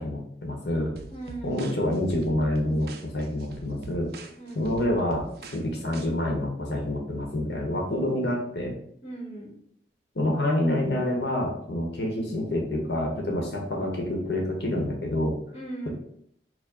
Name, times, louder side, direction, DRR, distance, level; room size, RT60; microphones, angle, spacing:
voice 1, 0.0-0.9 1.4-4.1 4.5-5.3 5.5-8.8 10.1-15.4, left 1 dB, 75° left, 0 dB, 0.9 m, -27 dB
sound 1, 1.0-6.1, right 3 dB, 60° right, 0.4 m, -43 dB
voice 2, 1.1-1.7 4.4-4.7 9.0-9.5 15.5-15.9, right 2 dB, 35° left, -2 dB, 1.0 m, -38 dB
4.6 x 2.0 x 3.7 m, 0.68 s
head